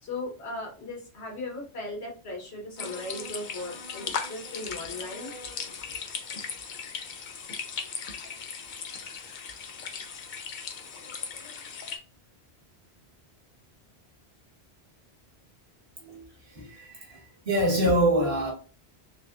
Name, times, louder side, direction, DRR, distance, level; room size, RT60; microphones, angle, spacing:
voice 1, 0.0-5.3, left 2 dB, 75° left, 1.4 m, -37 dB
sound 1, 2.8-12.0, left 6 dB, 55° left, 0.6 m, -38 dB
voice 2, 16.0-18.5, right 1 dB, 70° right, 1.5 m, -26 dB
4.0 x 2.2 x 2.4 m
omnidirectional pair, 1.1 m